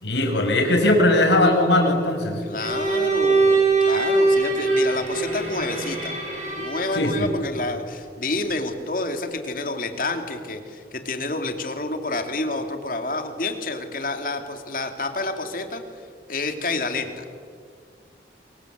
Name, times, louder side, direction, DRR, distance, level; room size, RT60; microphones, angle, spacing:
voice 1, 0.0-2.4 6.9-7.3, left 1 dB, 85° left, 3 dB, 5.8 m, -19 dB
voice 2, 2.4-6.1 6.6-15.8 16.3-17.3, left 2 dB, 50° left, 6 dB, 2.7 m, -29 dB
Bowed string instrument, 2.6-7.1, right 3 dB, 40° right, 7.7 m, -22 dB
27.5 x 23.5 x 8.2 m, 2.1 s
head